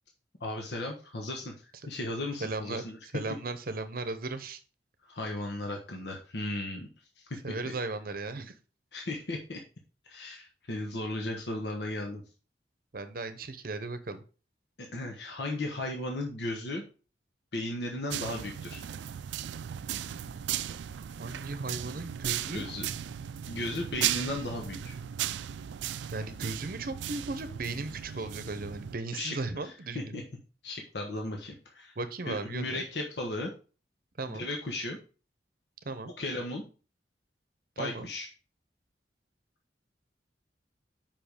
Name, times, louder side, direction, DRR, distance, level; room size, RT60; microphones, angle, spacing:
voice 1, 0.4-1.5 1.9-3.0 5.0-6.9 7.2-7.3 8.9-9.6 10.0-12.2 14.8-16.8 17.5-18.8 22.5-22.9 23.5-24.9 28.2-28.3 29.1-30.2 30.6-31.9 32.3-33.5 34.3-35.0 36.2-36.6 37.8-38.3, left 1 dB, 70° left, 2 dB, 1.2 m, -36 dB
voice 2, 2.4-4.6 7.4-8.5 12.9-14.2 21.2-22.7 26.1-30.3 32.0-32.8 34.2-34.5 35.8-36.1 37.8-38.1, right 3 dB, 55° right, 11 dB, 0.8 m, -36 dB
sound 1, 18.1-29.0, right 10 dB, 85° right, 0.4 m, -36 dB
5.5 x 5.2 x 5.0 m, 0.36 s
head